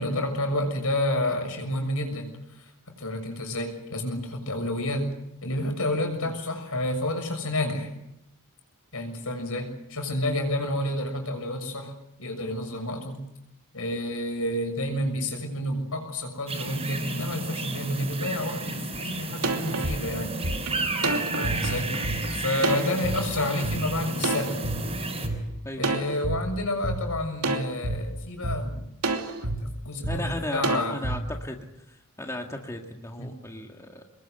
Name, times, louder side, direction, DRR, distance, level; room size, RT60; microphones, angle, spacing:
voice 1, 0.0-2.3 2.6-5.0 5.4-7.9 8.9-11.9 12.2-13.2 13.7-20.4 21.0-21.9 22.3-24.6 25.8-28.8 29.4-31.0 33.2-33.3, left 1 dB, 70° left, 5 dB, 6.8 m, -30 dB
sound 1, 16.5-25.3, right 2 dB, 30° right, 6.2 m, -32 dB
sound 2, 18.9-19.0 19.4-23.2 23.6-23.8 24.2-25.4 25.8-26.4 26.8-27.0 27.4-28.0 28.4-28.6 29.0-29.6 30.0-30.2 30.6-31.2, right 2 dB, 80° right, 2.9 m, -28 dB
voice 2, 30.1-31.6 32.2-34.0, left 1 dB, 15° left, 2 dB, 1.9 m, -35 dB
25.5 x 21.5 x 8.0 m, 0.80 s
head